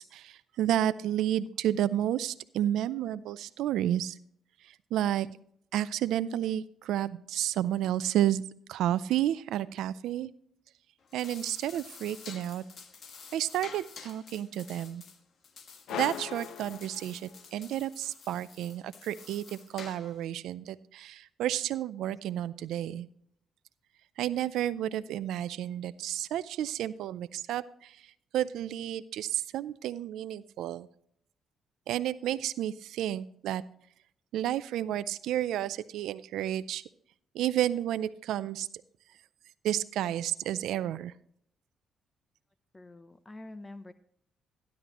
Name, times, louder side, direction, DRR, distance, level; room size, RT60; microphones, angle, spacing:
voice 1, 0.0-4.2 4.6-5.3 5.7-8.4 8.7-10.3 11.1-12.6 13.3-15.0 15.9-23.1 24.2-30.9 31.9-33.6 34.3-36.8 37.3-38.7 39.6-41.1, right 12 dB, 85° right, 14 dB, 0.4 m, -31 dB
sound 1, 11.0-20.3, left 5 dB, 55° left, 1.3 m, -50 dB
sound 2, 15.9-17.6, left 9 dB, 80° left, 0.4 m, -39 dB
voice 2, 42.7-43.9, left 2 dB, 20° left, 12 dB, 0.6 m, -46 dB
13.0 x 10.5 x 2.9 m, 0.67 s
cardioid pair, 90°, 0 cm